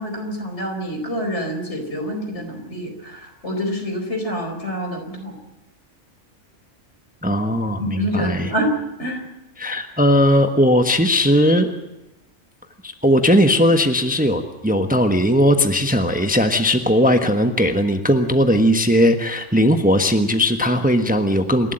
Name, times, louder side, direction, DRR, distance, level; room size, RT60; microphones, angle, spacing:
voice 1, 0.0-5.4 7.8-8.7 9.0-9.2, equal, 65° left, 4 dB, 4.9 m, -27 dB
voice 2, 7.2-8.5 9.6-11.7 12.8-21.7, equal, 5° right, 6 dB, 1.2 m, -18 dB
27.5 x 12.5 x 9.0 m, 0.97 s
omnidirectional pair, 1.3 m